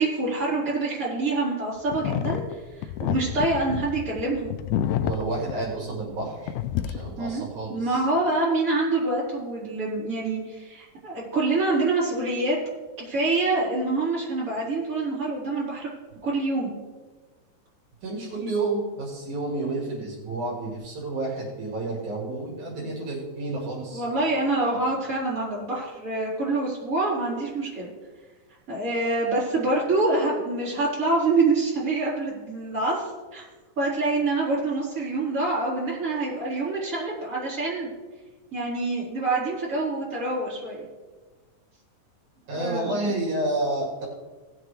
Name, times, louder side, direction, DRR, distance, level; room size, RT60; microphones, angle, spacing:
voice 1, 0.0-2.4 2.8-4.5 7.1-7.4 7.7-12.6 13.0-15.9 16.2-16.8 23.9-27.9 28.7-33.5 33.8-37.9 38.5-40.9 42.6-43.0, right 2 dB, 25° right, -8 dB, 4.3 m, -26 dB
sound 1, 1.9-6.2 6.5-7.3, left 11 dB, 85° left, 2.0 m, -29 dB
voice 2, 5.0-6.5 6.9-8.0 18.0-24.0 42.5-44.1, right 2 dB, 75° right, -3 dB, 3.4 m, -30 dB
17.5 x 7.5 x 3.3 m, 1.3 s
omnidirectional pair, 3.5 m